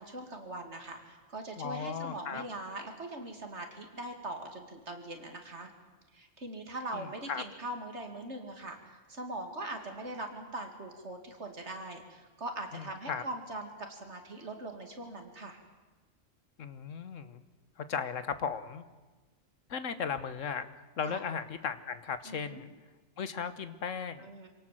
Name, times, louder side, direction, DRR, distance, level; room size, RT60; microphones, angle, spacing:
voice 1, 0.0-5.7 6.1-15.6 21.1-21.2 22.2-22.6 24.2-24.5, right 1 dB, 60° right, 4 dB, 3.0 m, -41 dB
voice 2, 1.6-2.4 6.9-7.4 12.7-13.2 16.6-17.4 17.8-18.8 19.7-22.7 23.2-24.3, left 6 dB, 75° left, 12 dB, 1.5 m, -36 dB
26.5 x 18.0 x 7.8 m, 1.3 s
omnidirectional pair, 1.3 m